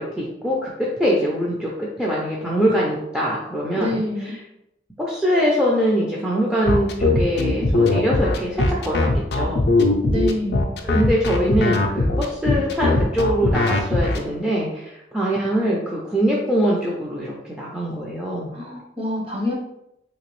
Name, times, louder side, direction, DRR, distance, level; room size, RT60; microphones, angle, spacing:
voice 1, 0.0-4.0 5.0-9.7 10.8-18.5, equal, 5° right, -4 dB, 0.4 m, -23 dB
voice 2, 3.8-4.3 10.0-10.7 18.5-19.5, left 1 dB, 30° right, -2 dB, 0.8 m, -26 dB
sound 1, 6.7-14.2, left 2 dB, 60° left, 0.4 m, -20 dB
3.4 x 2.9 x 3.0 m, 0.83 s
head